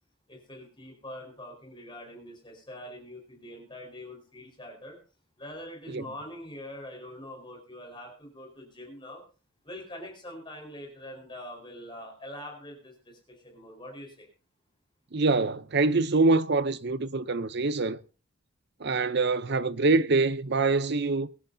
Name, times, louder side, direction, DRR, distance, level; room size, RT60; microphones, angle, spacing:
voice 1, 0.3-5.0 5.4-9.2 9.6-14.3, left 1 dB, 20° left, 4.7 m, -44 dB
voice 2, 15.1-18.0 18.8-21.3, right 3 dB, 50° right, 0.7 m, -25 dB
24.0 x 11.0 x 2.8 m
head